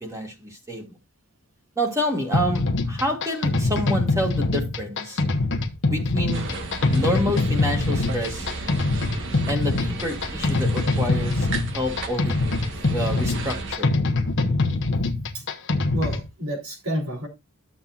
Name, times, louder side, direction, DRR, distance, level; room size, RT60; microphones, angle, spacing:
voice 1, 0.0-0.9 1.8-5.2 5.9-6.5 6.9-8.5 9.5-11.5 11.7-12.4 12.9-13.9, equal, 15° right, 2.0 m, -28 dB
sound 1, 2.3-16.3, left 2 dB, 60° left, 1.0 m, -24 dB
sound 2, 6.3-13.7, right 3 dB, 60° right, 1.5 m, -34 dB
voice 2, 15.9-17.3, equal, 80° right, 3.5 m, -29 dB
12.0 x 7.2 x 2.4 m
head